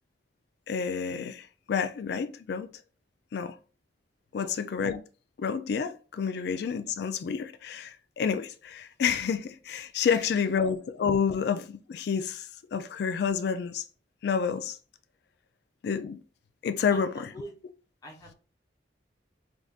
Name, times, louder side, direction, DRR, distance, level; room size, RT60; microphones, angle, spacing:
voice 1, 0.7-2.7 3.3-3.5 4.3-5.0 5.4-13.8 14.2-14.8 15.8-16.2 16.6-17.3, left 6 dB, 60° left, 0.3 m, -29 dB
voice 2, 16.9-17.5 18.0-18.3, equal, 20° left, 0.9 m, -44 dB
3.5 x 2.5 x 2.3 m
head